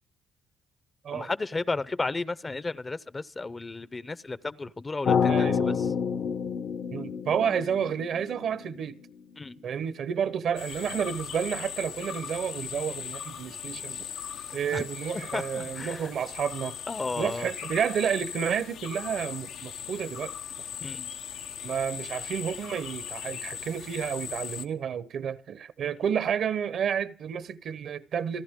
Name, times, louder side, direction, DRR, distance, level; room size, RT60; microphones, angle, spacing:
voice 1, 1.1-5.9 9.4-9.6 14.7-14.8 15.3-16.1 16.9-17.5 20.8-21.1, left 3 dB, 25° left, 0.6 m, -33 dB
sound 1, 5.0-9.2, left 6 dB, 60° left, 1.0 m, -28 dB
voice 2, 5.2-5.8 6.9-9.0 9.6-14.1 14.5-16.8 17.2-20.3 21.6-28.4, right 8 dB, 65° right, 1.0 m, -30 dB
sound 2, 10.6-24.7, left 8 dB, 85° left, 1.0 m, -39 dB
29.0 x 11.0 x 3.7 m
cardioid pair, 90°, 0 cm